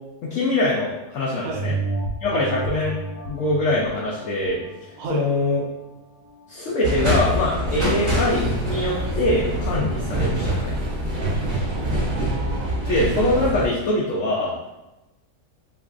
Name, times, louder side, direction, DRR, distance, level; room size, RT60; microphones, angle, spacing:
voice 1, 0.2-1.7 2.2-2.9 3.3-4.6 5.1-5.6 6.5-10.8 12.9-14.5, left 2 dB, 70° left, -5 dB, 0.7 m, -23 dB
sound 1, 1.5-6.4 6.9-7.0, right 3 dB, 90° left, 1.3 m, -32 dB
sound 2, 6.8-13.7, right 1 dB, 35° right, 1.1 m, -24 dB
voice 2, 11.7-12.7, right 4 dB, 70° right, 0 dB, 1.0 m, -32 dB
3.3 x 3.0 x 2.4 m, 0.99 s
omnidirectional pair, 1.8 m